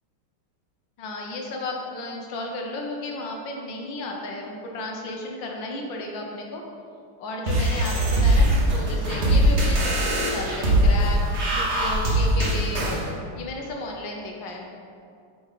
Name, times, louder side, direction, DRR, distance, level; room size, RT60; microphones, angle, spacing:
voice 1, 1.0-6.6 7.2-12.9 13.4-14.7, left 2 dB, 70° left, 1 dB, 1.5 m, -33 dB
sound 1, 7.5-13.0, right 1 dB, 40° right, 1.3 m, -21 dB
9.2 x 4.3 x 4.0 m, 2.4 s
omnidirectional pair, 2.3 m